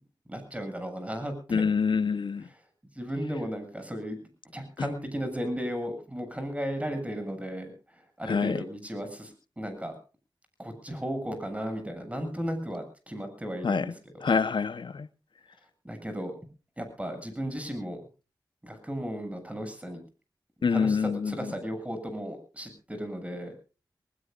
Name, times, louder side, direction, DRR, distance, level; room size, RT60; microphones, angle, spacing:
voice 1, 0.3-1.6 2.5-2.6 2.9-4.2 4.5-9.9 10.6-14.3 15.8-16.3 16.8-18.0 18.6-20.0 20.7-23.6, equal, 15° right, 7.7 m, -35 dB
voice 2, 1.5-2.5 8.3-8.6 13.6-13.8 14.2-15.1 20.6-21.3, left 5 dB, 80° left, 1.0 m, -26 dB
23.0 x 20.5 x 2.6 m
cardioid pair, 50°, 8 cm